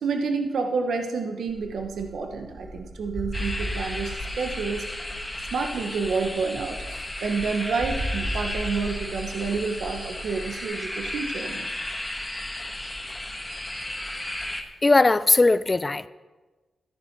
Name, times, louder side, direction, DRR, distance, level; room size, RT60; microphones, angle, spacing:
voice 1, 0.0-4.9 5.5-6.8 7.2-11.7, right 4 dB, 80° right, 5 dB, 1.0 m, -29 dB
sound 1, 1.5-10.6, equal, 20° right, 4.4 m, -37 dB
sound 2, 3.3-14.6, left 1 dB, 15° left, 1.5 m, -34 dB
voice 2, 14.8-16.1, left 3 dB, 30° left, 15 dB, 0.5 m, -19 dB
14.0 x 10.0 x 4.6 m, 1.2 s
cardioid pair, 80°, 0 cm